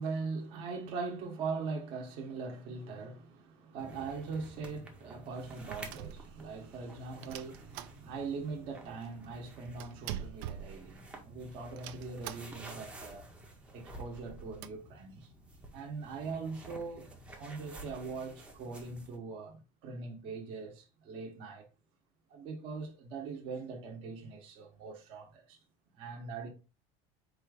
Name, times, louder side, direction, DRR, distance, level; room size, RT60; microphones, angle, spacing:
voice 1, 0.0-13.3 13.7-15.3 15.7-17.1 17.4-21.7 22.3-25.6 25.9-26.5, right 4 dB, 45° right, 1.0 m, -41 dB
sound 1, 3.8-19.2, right 1 dB, 10° right, 0.6 m, -51 dB
sound 2, 5.3-6.7 7.2-8.5 8.7-8.8 9.0-11.3 11.8-12.8 13.2-13.3 13.5-13.6 14.1-14.7, right 10 dB, 70° right, 0.4 m, -45 dB
4.3 x 2.4 x 4.7 m
cardioid pair, 175°, 13 cm